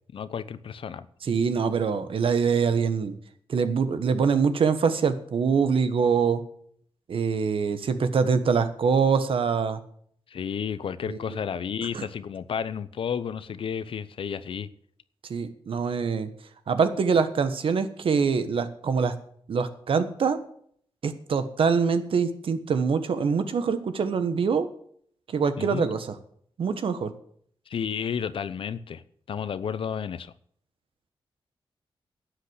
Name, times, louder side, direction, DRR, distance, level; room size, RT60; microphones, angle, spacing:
voice 1, 0.1-1.1 10.3-14.7 25.6-25.9 27.7-29.0 29.3-30.3, left 7 dB, 70° left, 15 dB, 0.8 m, -32 dB
voice 2, 1.2-3.1 3.5-6.4 7.1-9.8 11.1-11.4 11.9-12.1 15.3-16.3 16.7-19.1 19.5-20.4 21.0-24.7 25.3-26.1 26.6-27.1, right 5 dB, 70° right, 11 dB, 1.3 m, -24 dB
12.0 x 8.2 x 8.2 m, 0.63 s
wide cardioid pair, 110°, 9 cm